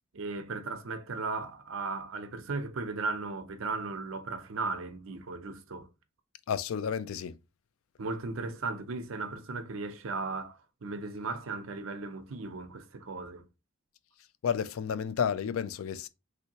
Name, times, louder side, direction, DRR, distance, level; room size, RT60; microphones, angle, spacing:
voice 1, 0.1-5.9 8.0-13.4, right 3 dB, 65° right, 0.6 m, -36 dB
voice 2, 6.5-7.4 14.4-16.1, left 7 dB, 70° left, 0.3 m, -31 dB
3.2 x 2.7 x 2.8 m
head